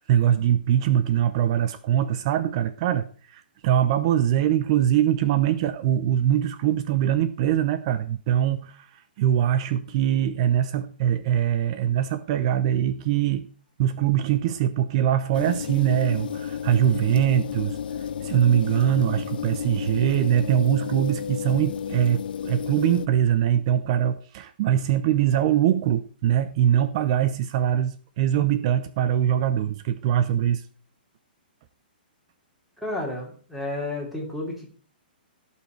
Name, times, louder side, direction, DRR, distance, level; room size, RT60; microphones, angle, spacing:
voice 1, 0.0-13.5 13.8-17.8 18.2-30.6, right 10 dB, 35° right, 12 dB, 0.5 m, -22 dB
sound 1, 15.3-23.1, left 8 dB, 70° left, 0.7 m, -32 dB
voice 2, 32.8-34.7, left 2 dB, ahead, -2 dB, 2.9 m, -31 dB
16.0 x 5.7 x 4.5 m, 0.42 s
hypercardioid pair, 160°, 5 cm